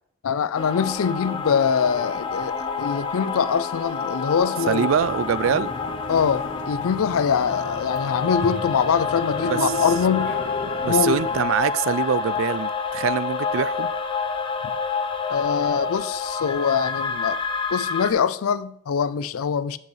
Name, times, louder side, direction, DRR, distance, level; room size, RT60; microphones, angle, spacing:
voice 1, 0.2-4.9 6.1-10.3 10.9-11.2 14.6-14.7 15.3-17.4 17.7-19.8, left 7 dB, 85° left, 0.4 m, -23 dB
sound 1, 0.6-18.1, left 5 dB, 25° left, 0.8 m, -28 dB
voice 2, 4.7-5.7 9.5-9.6 10.8-13.9, right 7 dB, 65° right, 0.3 m, -24 dB
sound 2, 4.9-11.4, left 2 dB, 60° left, 0.8 m, -35 dB
10.5 x 7.5 x 3.2 m
head